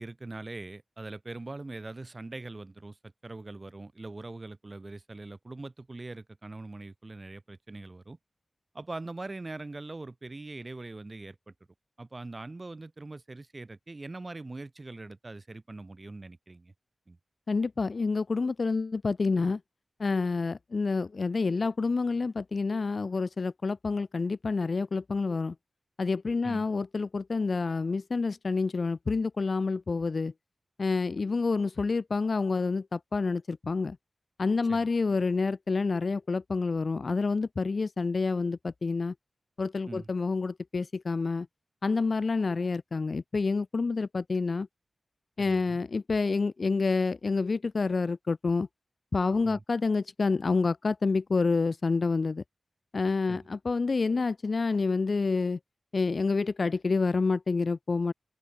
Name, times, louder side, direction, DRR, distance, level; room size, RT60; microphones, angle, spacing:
voice 1, 0.0-3.0 3.2-8.2 8.7-11.5 12.0-16.7 17.1-17.2 26.4-26.7 34.6-34.9 39.9-40.1 45.4-45.8 49.4-49.6 53.3-53.5, right 2 dB, 35° right, 7.8 m, -42 dB
voice 2, 17.5-19.6 20.0-25.5 26.0-30.3 30.8-34.0 34.4-39.1 39.6-41.5 41.8-44.7 45.4-48.7 49.1-52.4 52.9-55.6 55.9-58.1, left 4 dB, 60° left, 1.5 m, -28 dB
open air
wide cardioid pair, 70°, 0 cm